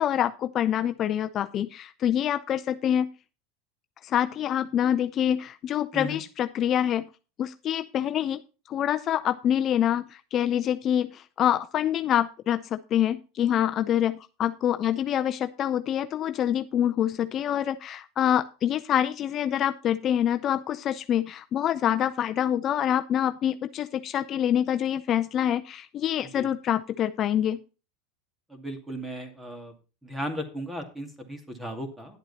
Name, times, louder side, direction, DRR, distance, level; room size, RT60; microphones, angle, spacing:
voice 1, 0.0-3.1 4.0-7.0 7.4-8.4 8.7-27.6, left 10 dB, 35° left, 10 dB, 0.5 m, -26 dB
voice 2, 28.5-29.7 30.0-32.2, equal, 5° right, 6 dB, 2.3 m, -36 dB
10.5 x 8.0 x 4.1 m, 0.33 s
supercardioid pair, 120°, 0 cm